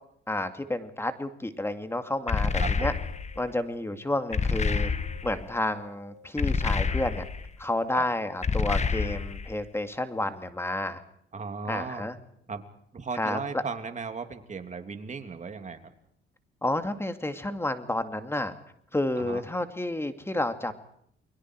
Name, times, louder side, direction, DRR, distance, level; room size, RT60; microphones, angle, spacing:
voice 1, 0.3-2.9 3.4-4.9 5.2-7.2 7.6-11.0 11.7-12.2 13.1-13.6 16.6-18.5 18.9-20.7, left 1 dB, 10° left, 8 dB, 2.4 m, -30 dB
sound 1, 1.5-7.5, left 3 dB, 65° right, 2.6 m, -55 dB
sound 2, 2.3-3.4 4.3-5.4 6.4-7.5 8.4-9.5, left 5 dB, 35° left, 1.5 m, -27 dB
voice 2, 2.6-3.0 7.9-8.0 11.3-12.1 12.5-12.6 12.9-15.9 19.2-19.4, right 5 dB, 40° right, 6 dB, 3.0 m, -36 dB
30.0 x 22.0 x 4.8 m, 0.71 s
cardioid pair, 90°, 20 cm